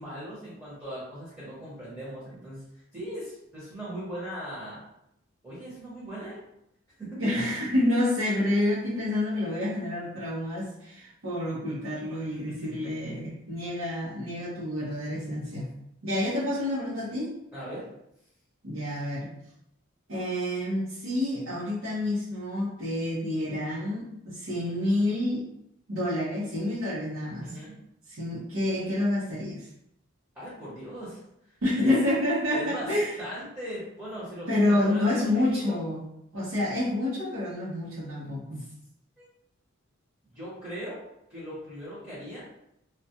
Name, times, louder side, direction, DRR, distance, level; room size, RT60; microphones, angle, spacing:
voice 1, 0.0-2.6 2.9-4.8 5.4-6.4 7.0-7.2 12.3-12.5 17.5-17.8 27.4-27.8 30.3-31.2 31.8-31.9 32.5-32.9 33.2-35.8 38.6-38.7 39.2-39.3 40.3-41.0 41.3-42.4, equal, 10° right, -9 dB, 0.9 m, -39 dB
voice 2, 7.2-15.7 16.0-17.3 18.6-19.3 20.1-25.4 25.9-27.6 28.1-29.7 31.6-33.2 34.5-36.0 36.3-38.6, left 1 dB, 85° right, -9 dB, 0.7 m, -28 dB
2.2 x 2.2 x 2.7 m, 0.79 s
head